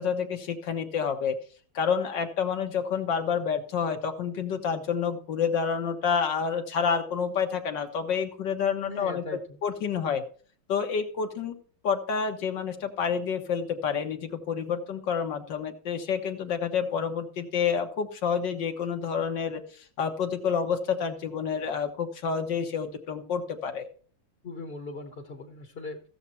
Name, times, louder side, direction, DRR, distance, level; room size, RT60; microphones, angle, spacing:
voice 1, 0.0-1.4 1.8-9.2 9.6-10.2 10.7-11.6 11.8-23.9, left 6 dB, 70° left, 5 dB, 1.7 m, -29 dB
voice 2, 8.9-9.4 24.4-26.0, left 3 dB, 35° left, 3 dB, 1.2 m, -39 dB
15.5 x 7.2 x 4.3 m, 0.43 s
omnidirectional pair, 2.1 m